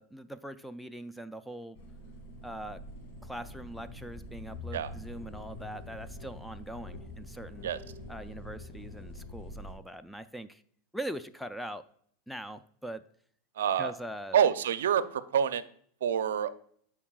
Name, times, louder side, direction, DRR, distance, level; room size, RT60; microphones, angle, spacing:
voice 1, 0.0-1.8 2.4-2.8 3.2-7.7 8.1-10.6 10.9-11.8 12.3-13.0 13.8-14.4, right 1 dB, ahead, 11 dB, 0.4 m, -42 dB
sound 1, 1.7-9.7, left 1 dB, 55° left, 2.2 m, -45 dB
voice 2, 13.6-13.9 14.3-15.6 16.0-16.5, right 8 dB, 90° right, 14 dB, 0.5 m, -27 dB
11.0 x 4.6 x 2.3 m, 0.62 s
supercardioid pair, 125°, 0 cm